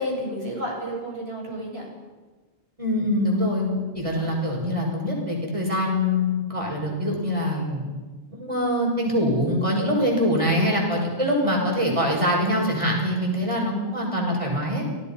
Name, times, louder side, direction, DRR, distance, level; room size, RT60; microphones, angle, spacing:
voice 1, 0.0-1.9 4.1-4.3 13.3-13.5, equal, 80° right, -3 dB, 8.1 m, -31 dB
voice 2, 2.8-7.8 8.3-14.8, left 1 dB, 30° right, -1 dB, 6.2 m, -24 dB
28.5 x 18.5 x 5.6 m, 1.3 s
omnidirectional pair, 1.1 m